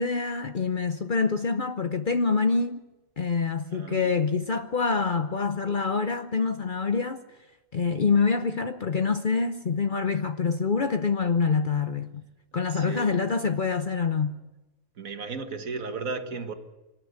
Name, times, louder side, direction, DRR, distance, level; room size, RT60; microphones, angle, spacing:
voice 1, 0.0-2.8 3.2-7.2 7.7-12.2 12.5-14.4, left 5 dB, 45° left, 0.8 m, -26 dB
voice 2, 3.7-4.1 12.7-13.2 15.0-16.5, right 4 dB, 70° right, 1.9 m, -35 dB
25.5 x 11.5 x 9.2 m
omnidirectional pair, 1.5 m